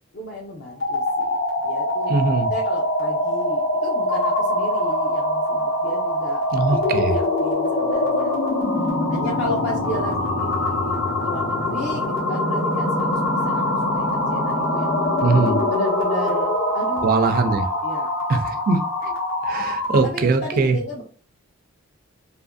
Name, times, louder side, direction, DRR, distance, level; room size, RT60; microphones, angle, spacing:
voice 1, 0.1-1.4 1.6-2.1 2.5-8.4 9.1-15.1 15.7-17.4 17.8-18.1 19.7-21.0, left 1 dB, 55° left, -3 dB, 0.6 m, -33 dB
sound 1, 0.7-20.1, left 1 dB, 75° left, 1.1 m, -23 dB
voice 2, 2.1-2.5 6.5-7.1 15.2-15.6 17.0-17.6 18.3-18.8 19.0-19.1 19.4-20.8, right 4 dB, 45° right, 7 dB, 0.3 m, -21 dB
2.7 x 2.5 x 2.2 m, 0.39 s
head